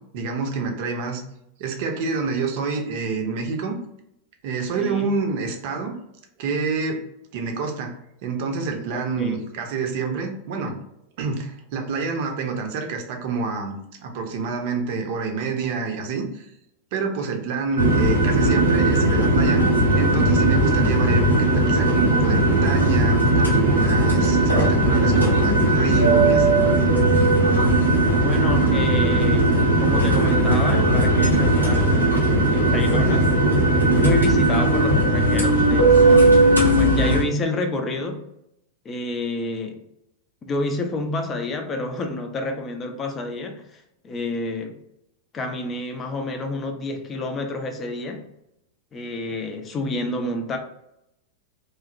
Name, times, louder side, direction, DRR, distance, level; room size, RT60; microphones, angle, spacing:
voice 1, 0.1-1.2 1.6-3.8 4.4-5.9 6.4-7.0 7.3-10.8 11.2-16.5 16.9-19.6 19.9-26.6, right 4 dB, 50° right, 3 dB, 0.6 m, -27 dB
voice 2, 4.8-5.1 8.9-9.4 28.2-32.0 32.5-33.3 33.7-36.4 36.8-38.2 38.8-39.8 40.5-44.8 45.3-48.3 48.9-50.6, left 2 dB, 25° left, 5 dB, 0.5 m, -29 dB
sound 1, 17.8-37.2, right 1 dB, 85° left, 0.7 m, -18 dB
3.1 x 2.1 x 2.5 m, 0.81 s
figure-of-eight pair, 90°, 0 cm